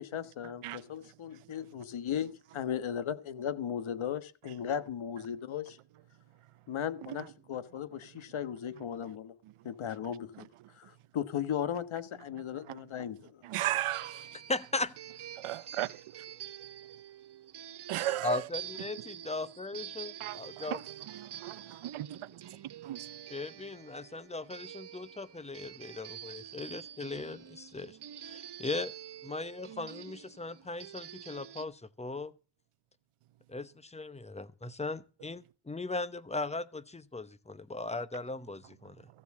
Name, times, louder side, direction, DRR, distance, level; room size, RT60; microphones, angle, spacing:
voice 1, 0.0-5.8 6.7-9.3 9.6-10.5 10.7-13.4, left 9 dB, 70° left, 1.3 m, -36 dB
voice 2, 13.4-14.3 15.4-16.0 17.9-18.4 20.2-20.4 20.7-20.8 21.4-21.6 21.9-22.5 22.8-23.1, right 14 dB, 85° right, 0.7 m, -34 dB
sound 1, 13.9-31.7, right 10 dB, 55° right, 0.8 m, -47 dB
voice 3, 14.5-14.9 18.2-20.8 23.3-28.9 29.2-32.4 33.5-39.1, left 3 dB, 15° left, 0.9 m, -38 dB
15.0 x 7.2 x 7.3 m
cardioid pair, 90°, 49 cm